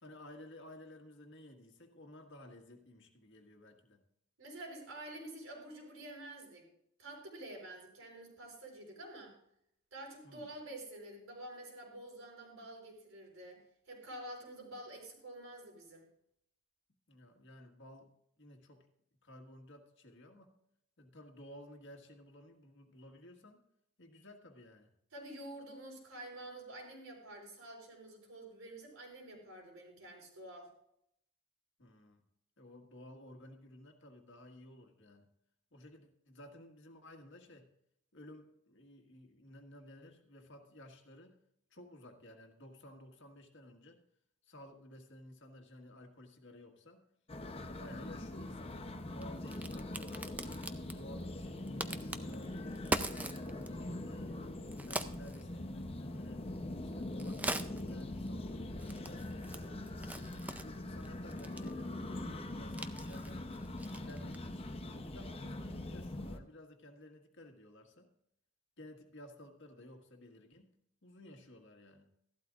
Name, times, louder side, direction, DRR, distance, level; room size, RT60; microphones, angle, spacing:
voice 1, 0.0-4.0 10.2-10.5 17.1-18.9 19.2-20.5 21.0-23.6 24.0-24.9 31.8-32.2 32.6-35.3 35.7-37.7 38.1-41.4 41.7-44.0 44.4-47.0 47.5-50.4 50.8-54.5 54.8-56.5 56.7-59.8 60.3-63.5 63.8-64.7 65.0-68.1 68.8-70.7 71.0-72.1, left 1 dB, 55° left, 4 dB, 1.6 m, -55 dB
voice 2, 4.4-6.7 7.0-9.3 9.9-13.6 13.9-16.0 25.1-30.7, right 1 dB, 70° right, 0 dB, 4.1 m, -49 dB
pacifica-birds-chickens, 47.3-66.4, left 1 dB, 25° left, 0.7 m, -42 dB
Crack, 49.1-64.6, right 2 dB, 5° right, 0.4 m, -44 dB
14.5 x 12.0 x 2.5 m, 0.74 s
head